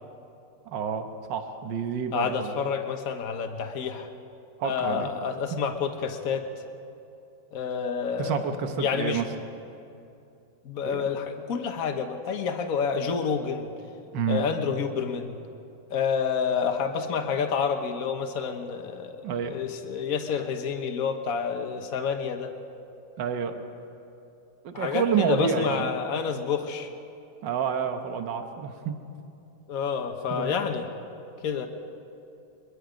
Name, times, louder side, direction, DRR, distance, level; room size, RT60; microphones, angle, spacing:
voice 1, 0.7-2.6 4.6-5.1 5.5-5.6 8.2-9.3 10.8-11.1 14.1-14.4 19.2-19.6 23.2-23.6 24.6-25.9 27.4-29.0 30.3-30.8, right 7 dB, 75° right, 6 dB, 1.8 m, -29 dB
voice 2, 2.1-4.1 4.6-6.5 7.5-8.4 8.8-9.2 10.6-13.7 14.3-15.4 15.9-19.2 19.5-22.5 24.7-26.9 29.7-30.8 31.4-31.7, left 6 dB, 50° left, 5 dB, 1.5 m, -28 dB
22.5 x 22.0 x 5.2 m, 2.7 s
omnidirectional pair, 2.0 m